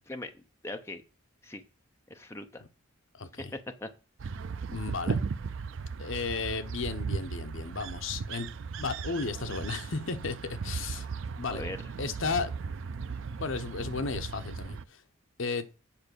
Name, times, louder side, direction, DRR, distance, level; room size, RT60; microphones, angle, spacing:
voice 1, 0.1-1.0 1.4-1.6 2.1-2.6 3.4-3.9 11.5-11.9, left 2 dB, 10° left, 0.7 m, -40 dB
voice 2, 3.1-3.5 4.7-5.2 6.0-8.5 8.8-11.1 11.4-11.6 12.0-12.5 13.4-15.0 15.4-15.6, left 4 dB, 70° left, 0.9 m, -34 dB
sound 1, 4.2-14.8, right 5 dB, 70° right, 0.4 m, -37 dB
8.7 x 4.8 x 6.8 m
head